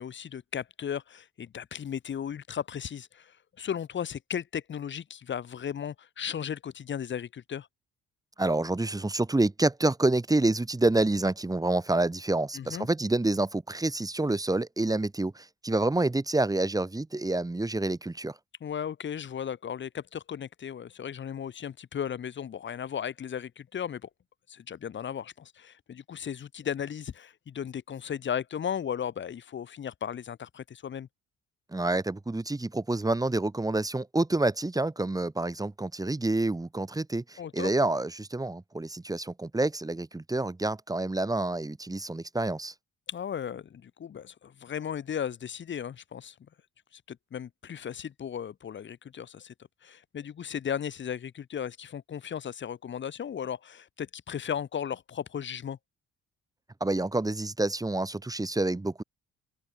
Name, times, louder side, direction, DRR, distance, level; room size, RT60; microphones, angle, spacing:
voice 1, 0.0-7.7 12.5-12.9 18.6-24.1 24.5-31.1 37.4-37.7 43.1-46.3 46.9-49.5 49.8-55.8, left 8 dB, 40° left, 0.7 m, -36 dB
voice 2, 8.4-18.3 31.7-42.7 56.8-59.0, right 2 dB, 10° right, 1.4 m, -28 dB
open air
cardioid pair, 90°, 30 cm